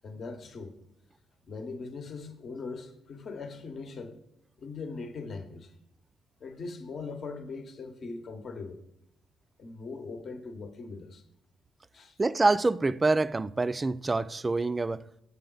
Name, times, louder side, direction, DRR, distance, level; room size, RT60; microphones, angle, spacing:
voice 1, 0.0-0.8 1.5-4.2 4.6-5.7 6.4-8.8 9.6-11.2 11.9-12.2, left 4 dB, 55° left, 0.9 m, -40 dB
voice 2, 12.2-15.0, right 3 dB, 25° right, 0.3 m, -26 dB
7.8 x 6.9 x 3.8 m
cardioid pair, 90°, 0 cm